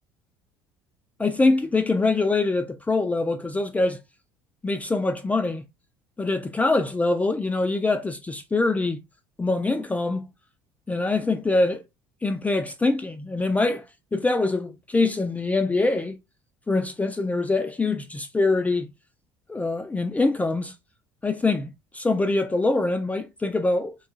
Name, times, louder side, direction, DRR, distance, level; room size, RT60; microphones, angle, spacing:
voice 1, 1.2-4.0 4.6-5.7 6.2-9.0 9.4-10.3 10.9-11.8 12.2-13.8 14.1-16.2 16.7-18.9 19.5-20.7 21.2-24.0, left 3 dB, 15° left, 0.4 m, -24 dB
2.9 x 2.3 x 2.7 m
hypercardioid pair, 65°, 11 cm